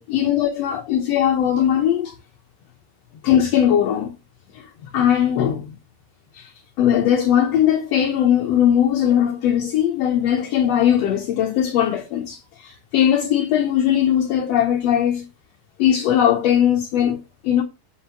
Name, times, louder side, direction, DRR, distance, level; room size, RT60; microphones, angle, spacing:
voice 1, 0.0-2.1 3.2-4.1 4.5-5.7 6.3-6.5 6.8-15.2 15.8-17.6, left 10 dB, 70° left, 1.6 m, -19 dB
7.8 x 5.4 x 5.8 m
omnidirectional pair, 4.1 m